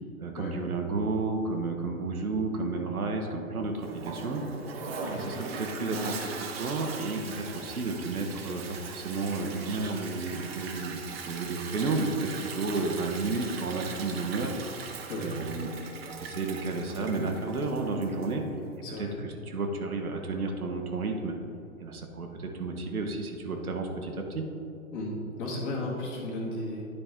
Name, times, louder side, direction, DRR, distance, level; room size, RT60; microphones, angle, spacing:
voice 1, 0.2-4.4 5.1-14.5 15.2-15.7 16.1-18.4 19.0-21.3 21.8-24.5, right 3 dB, 75° right, 3 dB, 1.0 m, -32 dB
Toilet flush, 3.8-18.4, right 5 dB, 45° right, 0.8 m, -40 dB
voice 2, 18.8-19.1 24.9-26.8, left 1 dB, 35° left, -4 dB, 1.6 m, -34 dB
9.8 x 4.2 x 3.6 m, 2.7 s
figure-of-eight pair, 120°, 44 cm